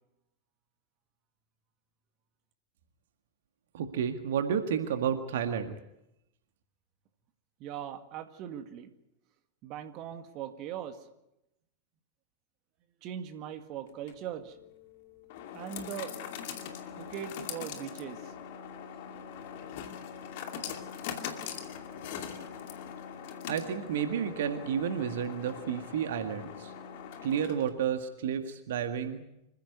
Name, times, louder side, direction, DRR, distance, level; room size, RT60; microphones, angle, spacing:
voice 1, 3.7-5.8 23.5-26.7 27.2-29.2, right 8 dB, 55° right, 7 dB, 1.8 m, -31 dB
voice 2, 7.6-8.9 9.6-11.0 13.0-14.6 15.5-16.1 17.0-18.3, right 9 dB, 40° right, 7 dB, 2.0 m, -40 dB
sound 1, 13.9-27.9, left 8 dB, 50° left, 2.5 m, -42 dB
26.0 x 15.5 x 9.4 m, 0.88 s
figure-of-eight pair, 90°, 0 cm